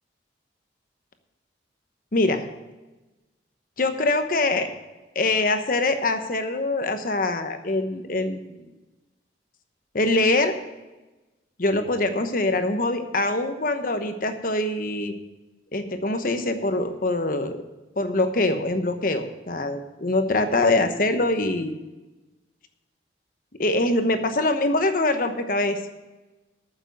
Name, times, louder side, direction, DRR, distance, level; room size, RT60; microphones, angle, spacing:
voice 1, 2.1-2.5 3.8-4.7 5.1-8.7 9.9-10.6 11.6-15.1 15.7-17.6 18.0-21.7 23.6-25.8, left 2 dB, 50° left, 8 dB, 1.0 m, -24 dB
9.3 x 7.2 x 9.1 m, 1.1 s
head